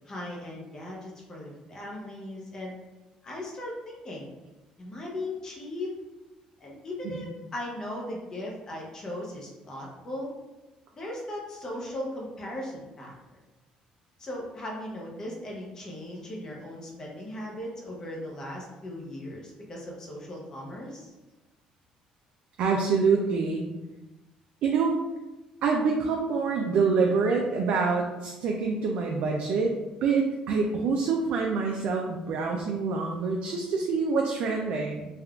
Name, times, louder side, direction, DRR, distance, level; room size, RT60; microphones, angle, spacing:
voice 1, 0.1-2.7 3.2-4.3 4.8-5.9 6.6-10.3 10.9-13.1 14.2-21.1, left 1 dB, 25° left, -2 dB, 0.6 m, -38 dB
voice 2, 22.6-23.6 24.6-25.0 25.6-35.1, right 4 dB, 65° right, 0 dB, 0.3 m, -26 dB
3.4 x 2.3 x 2.3 m, 1.1 s
cardioid pair, 140°, 2 cm